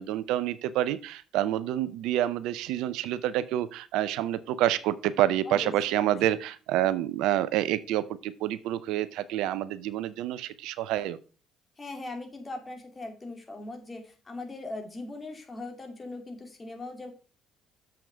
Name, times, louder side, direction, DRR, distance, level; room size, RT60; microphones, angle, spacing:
voice 1, 0.0-11.2, right 12 dB, 75° right, 16 dB, 0.5 m, -28 dB
voice 2, 5.4-6.2 11.8-17.1, left 2 dB, 30° left, 3 dB, 2.8 m, -40 dB
7.2 x 5.9 x 4.8 m, 0.36 s
hypercardioid pair, 55°, 0 cm